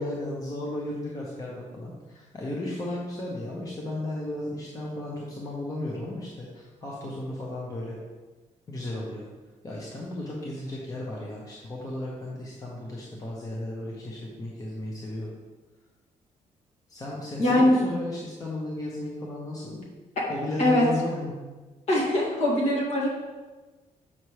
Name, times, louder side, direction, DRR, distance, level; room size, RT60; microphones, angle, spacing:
voice 1, 0.0-8.0 8.7-9.3 9.6-15.3 16.9-19.8 20.3-21.4, left 1 dB, 25° left, -4 dB, 0.9 m, -34 dB
voice 2, 17.4-17.8 20.2-20.3 20.6-20.8 21.9-23.1, left 1 dB, 55° left, -4 dB, 1.9 m, -22 dB
7.5 x 5.6 x 3.2 m, 1.3 s
cardioid pair, 170°, 14 cm